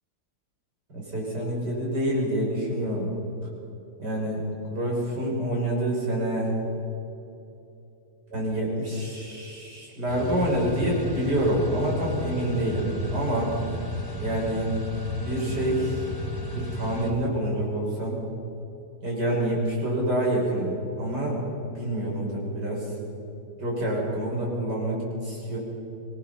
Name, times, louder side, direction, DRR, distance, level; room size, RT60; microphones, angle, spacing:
voice 1, 0.9-3.1 4.0-4.4 4.7-6.5 8.3-13.6 14.2-14.7 15.2-16.1 16.5-18.2 19.0-21.5 21.7-23.0 23.6-25.6, right 1 dB, 75° right, -3 dB, 6.7 m, -27 dB
sound 1, 10.1-17.1, left 1 dB, 55° left, 3.2 m, -33 dB
25.5 x 19.5 x 5.7 m, 3.0 s
omnidirectional pair, 1.8 m